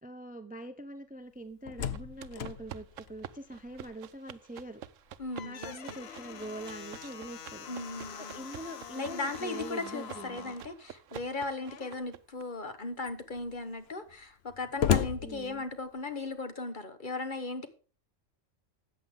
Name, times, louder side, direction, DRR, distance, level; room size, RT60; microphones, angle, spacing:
voice 1, 0.0-4.8 5.4-7.7 8.2-10.5 15.2-15.6, right 1 dB, 10° right, 10 dB, 0.7 m, -44 dB
Slam, 1.4-4.2 4.5-4.6 5.1-10.7 11.6-12.1 12.7-12.8 13.0-16.1, left 8 dB, 60° left, 1.0 m, -37 dB
sound 1, 1.9-12.4, right 11 dB, 80° right, 1.0 m, -49 dB
voice 2, 5.2-6.0 7.7-8.5 9.0-17.7, left 3 dB, 40° left, 9 dB, 1.3 m, -37 dB
13.5 x 8.6 x 3.6 m, 0.38 s
omnidirectional pair, 1.3 m